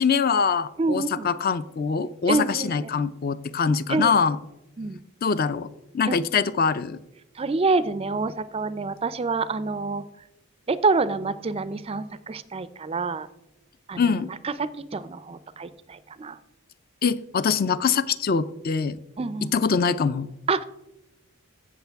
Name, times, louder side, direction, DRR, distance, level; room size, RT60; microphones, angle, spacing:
voice 1, 0.0-4.4 5.2-5.7 5.9-7.0 14.0-14.3 17.0-19.0 19.5-20.3, left 5 dB, 40° left, 14 dB, 0.4 m, -23 dB
voice 2, 0.8-1.3 2.3-2.9 3.9-4.1 4.8-5.0 6.1-6.2 7.4-10.0 10.7-13.3 13.9-16.4 19.2-19.5 20.5-20.6, right 3 dB, 25° right, 15 dB, 0.4 m, -27 dB
16.0 x 6.4 x 3.4 m, 0.91 s
head